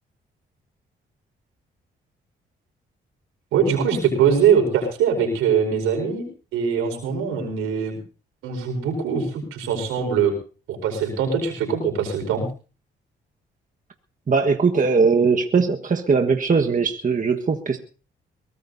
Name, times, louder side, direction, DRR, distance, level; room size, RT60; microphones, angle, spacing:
voice 1, 3.5-6.2 6.5-8.0 8.4-10.4 10.7-12.5, right 7 dB, 90° right, 4 dB, 4.9 m, -22 dB
voice 2, 14.3-17.8, right 4 dB, 40° right, 4 dB, 1.5 m, -20 dB
22.5 x 18.0 x 2.7 m, 0.37 s
supercardioid pair, 55°, 21 cm